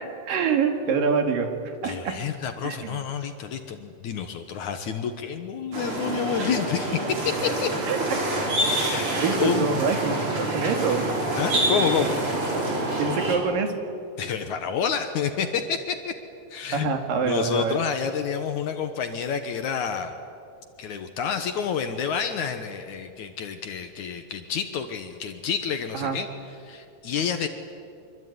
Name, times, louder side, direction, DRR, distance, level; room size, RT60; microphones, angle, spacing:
voice 1, 0.0-2.2 2.6-3.0 7.9-8.2 8.7-11.1 13.0-13.7 16.7-17.8 25.9-26.2, right 5 dB, 80° right, 5 dB, 3.9 m, -26 dB
voice 2, 1.8-7.7 8.8-9.7 11.4-12.1 14.2-16.1 16.5-16.9 17.2-20.2 20.8-26.3 26.6-27.5, left 7 dB, 65° left, 7 dB, 2.5 m, -29 dB
sound 1, 5.7-13.4, right 1 dB, 40° right, 4.9 m, -26 dB
25.5 x 24.0 x 9.6 m, 2.5 s
omnidirectional pair, 3.9 m